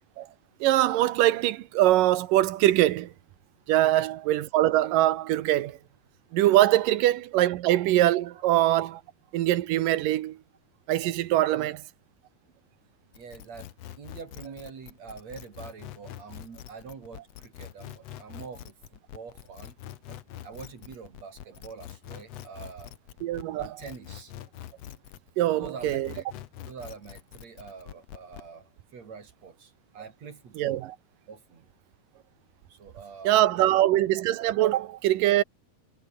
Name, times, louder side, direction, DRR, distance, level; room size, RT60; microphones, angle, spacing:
voice 1, 0.6-3.1 3.7-5.8 6.3-9.0 9.3-10.4 10.9-11.8 23.2-23.8 25.4-26.1 30.6-30.9 33.2-35.4, right 14 dB, 75° right, 2.5 m, -23 dB
sound 1, 13.1-25.3 25.6-28.5, left 11 dB, 60° left, 1.8 m, -44 dB
voice 2, 13.1-19.7 20.4-22.9 23.6-24.3 25.4-26.3 26.6-30.8 31.3-31.7 32.7-33.9, right 5 dB, 50° right, 4.3 m, -45 dB
omnidirectional pair, 4.2 m